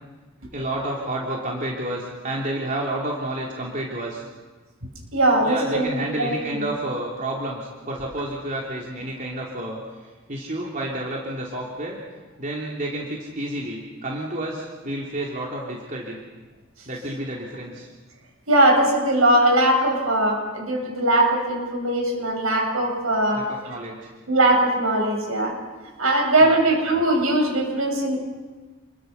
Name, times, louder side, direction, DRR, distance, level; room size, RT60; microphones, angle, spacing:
voice 1, 0.5-4.3 5.4-9.8 10.3-12.0 12.4-16.2 16.8-17.9 23.3-24.1 26.4-26.6, right 1 dB, 40° right, -2 dB, 3.2 m, -30 dB
voice 2, 5.1-5.9 6.2-6.6 18.5-23.4 24.3-25.5 26.0-28.2, right 1 dB, 80° right, 1 dB, 7.2 m, -20 dB
29.5 x 22.5 x 5.5 m, 1.3 s
head